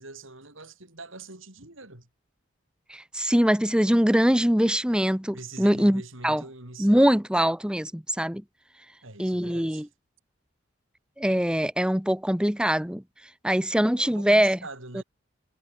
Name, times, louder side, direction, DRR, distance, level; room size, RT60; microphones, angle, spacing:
voice 1, 0.0-2.1 5.3-7.1 9.0-9.9 14.0-15.0, right 3 dB, 70° right, 6.5 m, -43 dB
voice 2, 2.9-6.4 6.8-8.4 9.2-9.9 11.2-13.0 13.4-14.6 14.9-15.0, equal, 5° right, 1.0 m, -23 dB
head